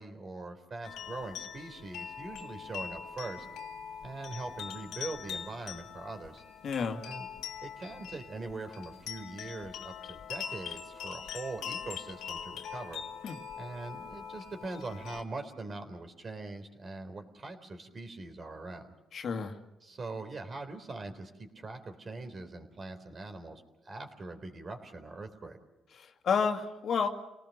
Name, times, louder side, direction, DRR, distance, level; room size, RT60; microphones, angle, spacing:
voice 1, 0.0-3.5 4.0-6.4 7.0-7.3 7.6-13.0 13.6-18.9 19.8-25.6, right 3 dB, 40° right, 7 dB, 3.7 m, -42 dB
sound 1, 0.8-15.2, left 7 dB, 85° left, 2.1 m, -43 dB
voice 2, 6.6-7.0 13.2-13.4 19.1-19.6 26.0-27.1, left 6 dB, 60° left, 4 dB, 2.1 m, -30 dB
28.5 x 18.5 x 6.6 m, 0.99 s
cardioid pair, 90°, 0 cm